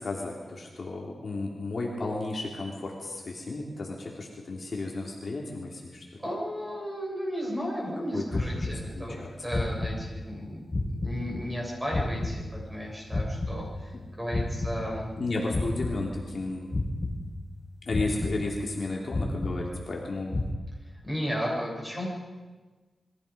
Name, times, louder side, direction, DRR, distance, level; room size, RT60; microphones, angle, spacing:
voice 1, 0.0-6.0 8.1-8.2 8.6-9.3 13.9-14.0 15.2-16.7 17.8-20.3, left 2 dB, 40° left, -2 dB, 3.3 m, -33 dB
voice 2, 6.2-15.1 20.9-22.1, equal, 10° right, -3 dB, 7.8 m, -34 dB
sound 1, 8.3-9.2 9.5-10.4 10.7-12.8 13.1-15.2 15.5-16.4 16.7-17.6 17.9-18.8 19.1-20.0 20.3-20.5, left 2 dB, 20° left, 1.9 m, -32 dB
29.0 x 23.0 x 5.2 m, 1.3 s
wide cardioid pair, 180°, 0 cm